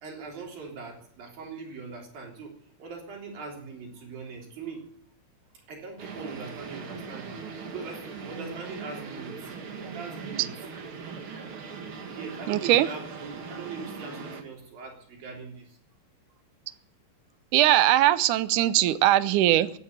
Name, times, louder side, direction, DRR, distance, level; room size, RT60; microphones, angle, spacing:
voice 1, 0.0-2.5 2.8-4.9 5.7-7.4 7.6-9.4 9.8-10.5 12.1-15.8, right 4 dB, 65° right, 0 dB, 5.3 m, -41 dB
sound 1, 6.0-14.4, right 5 dB, 45° right, 2.1 m, -40 dB
voice 2, 12.5-12.9 17.5-19.8, right 14 dB, 80° right, 14 dB, 1.8 m, -21 dB
15.5 x 10.5 x 8.1 m, 0.62 s
omnidirectional pair, 4.5 m